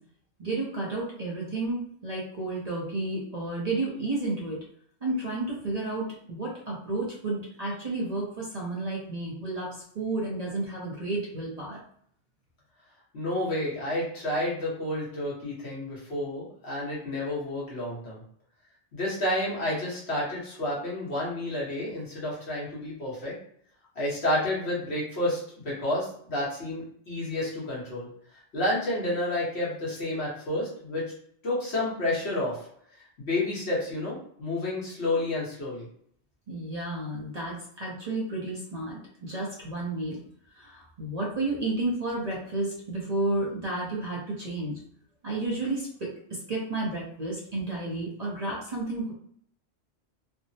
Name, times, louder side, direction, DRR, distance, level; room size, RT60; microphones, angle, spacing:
voice 1, 0.4-4.6 5.0-11.8 36.5-40.2 40.5-44.8 45.2-46.1 46.5-49.1, right 2 dB, 40° right, -4 dB, 0.7 m, -31 dB
voice 2, 13.1-18.2 18.9-23.3 23.9-25.4 25.6-28.1 28.5-31.0 31.4-32.6 33.2-35.9, left 1 dB, 70° left, -6 dB, 1.4 m, -30 dB
3.3 x 2.0 x 2.7 m, 0.65 s
omnidirectional pair, 1.1 m